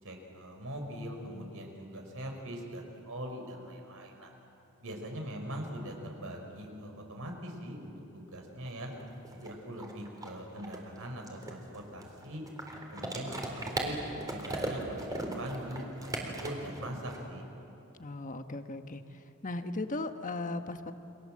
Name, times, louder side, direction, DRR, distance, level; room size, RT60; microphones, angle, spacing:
voice 1, 0.0-4.3 4.8-8.9 9.3-12.4 12.9-17.4, equal, 70° right, 3 dB, 5.1 m, -42 dB
sound 1, 8.7-8.8 9.0-17.2, right 1 dB, 15° right, 3.9 m, -38 dB
voice 2, 18.0-19.0 19.4-20.9, left 2 dB, 35° left, 8 dB, 1.3 m, -37 dB
29.5 x 25.5 x 7.7 m, 2.9 s
head